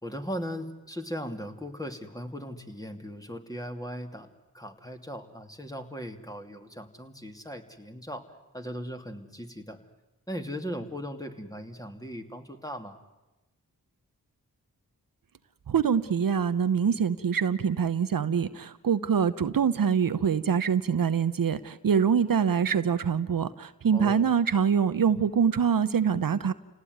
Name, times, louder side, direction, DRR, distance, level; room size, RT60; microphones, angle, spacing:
voice 1, 0.0-4.3 4.5-9.8 10.3-13.0 23.9-24.2, equal, 10° left, 5 dB, 2.8 m, -38 dB
voice 2, 15.7-26.5, right 7 dB, 65° right, 12 dB, 0.9 m, -24 dB
28.5 x 18.0 x 9.5 m, 1.0 s
cardioid pair, 50°, 36 cm